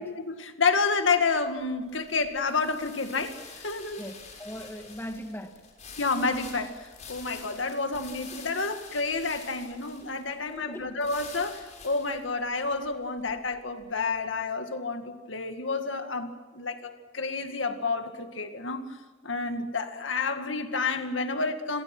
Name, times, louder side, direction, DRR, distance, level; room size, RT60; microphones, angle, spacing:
voice 1, 0.0-4.0 6.0-18.9 19.2-21.8, left 4 dB, 80° left, 7 dB, 2.1 m, -29 dB
sound 1, 0.9-14.2, left 5 dB, 40° left, 6.1 m, -48 dB
voice 2, 4.0-5.6 10.5-10.9, equal, 10° left, 5 dB, 1.8 m, -39 dB
30.0 x 22.5 x 6.2 m, 1.3 s
head